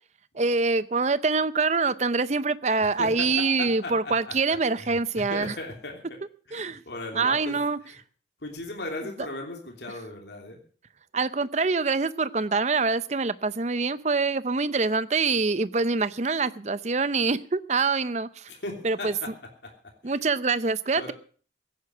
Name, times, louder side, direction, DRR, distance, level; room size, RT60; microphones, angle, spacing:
voice 1, 0.3-5.5 6.5-6.8 7.2-7.8 11.1-18.5 18.8-19.1 20.0-21.1, right 4 dB, 40° right, 15 dB, 0.6 m, -25 dB
voice 2, 2.8-6.2 6.5-8.0 8.4-10.6 18.5-20.2 20.9-21.1, left 2 dB, 70° left, 2 dB, 3.0 m, -38 dB
16.5 x 9.7 x 6.2 m, 0.44 s
head